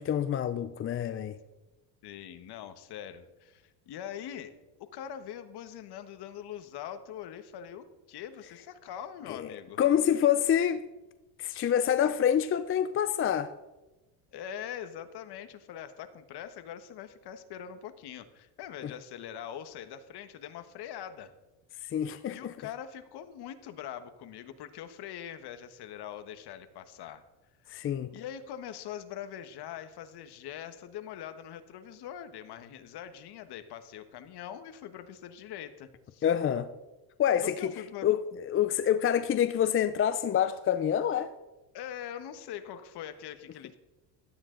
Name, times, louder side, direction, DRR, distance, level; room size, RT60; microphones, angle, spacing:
voice 1, 0.0-1.3 9.3-9.5 9.8-10.8 11.4-13.5 21.8-22.5 27.7-28.1 36.2-36.7 37.2-37.7 38.0-41.3, left 9 dB, 30° left, 0.5 m, -27 dB
voice 2, 2.0-9.8 14.3-21.3 22.3-27.2 28.1-36.2 37.4-38.1 41.7-43.8, left 9 dB, 55° left, 1.4 m, -43 dB
16.5 x 12.5 x 3.9 m
cardioid pair, 125°, 47 cm